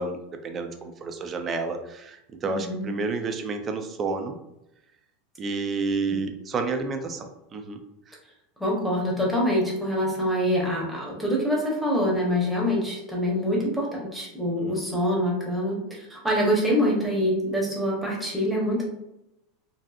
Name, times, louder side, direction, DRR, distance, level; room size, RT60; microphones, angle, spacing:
voice 1, 0.0-4.4 5.4-7.8 8.1-8.2 14.6-14.8, right 3 dB, 25° right, 6 dB, 0.3 m, -30 dB
voice 2, 2.4-2.9 6.1-6.3 8.6-18.8, equal, ahead, -4 dB, 0.8 m, -25 dB
2.6 x 2.5 x 2.3 m, 0.87 s
supercardioid pair, 130°, 0 cm